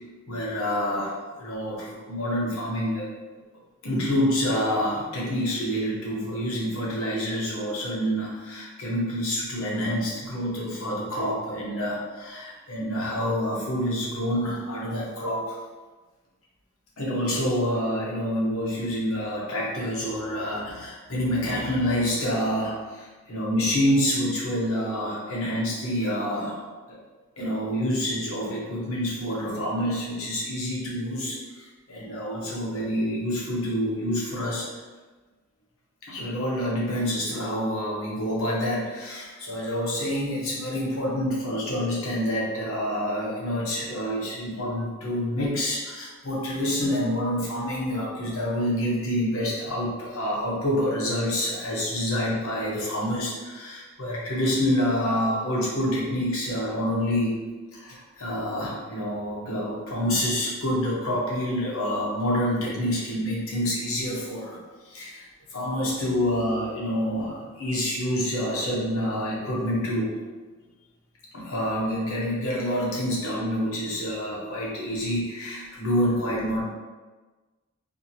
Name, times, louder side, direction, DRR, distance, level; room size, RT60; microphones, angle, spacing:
voice 1, 0.3-3.1 3.8-15.6 17.0-27.0 27.4-34.6 36.0-57.4 57.7-70.1 71.3-76.6, equal, 80° left, -5 dB, 0.9 m, -27 dB
2.7 x 2.6 x 2.7 m, 1.3 s
head